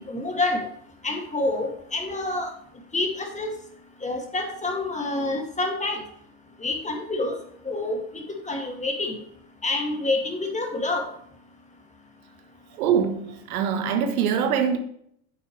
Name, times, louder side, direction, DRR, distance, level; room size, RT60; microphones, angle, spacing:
voice 1, 0.1-0.7 1.0-2.5 2.9-3.5 4.0-6.0 6.6-7.3 7.7-9.1 9.6-11.0, left 2 dB, 15° left, 2.3 m, -27 dB
voice 2, 12.8-14.8, right 7 dB, 70° right, 1.4 m, -23 dB
9.6 x 7.5 x 3.3 m
hypercardioid pair, 80°, 44 cm